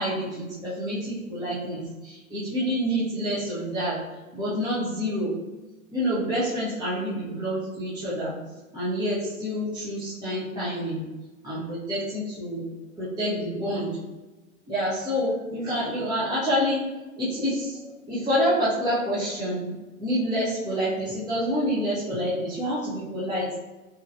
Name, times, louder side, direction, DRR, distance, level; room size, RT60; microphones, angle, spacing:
voice 1, 0.0-4.0 4.3-5.3 5.9-8.4 8.7-11.0 11.4-12.7 13.0-14.0 14.7-16.8 17.2-19.7 20.0-23.5, equal, 10° right, -10 dB, 1.0 m, -27 dB
4.0 x 3.1 x 2.7 m, 1.1 s
figure-of-eight pair, 110°, 42 cm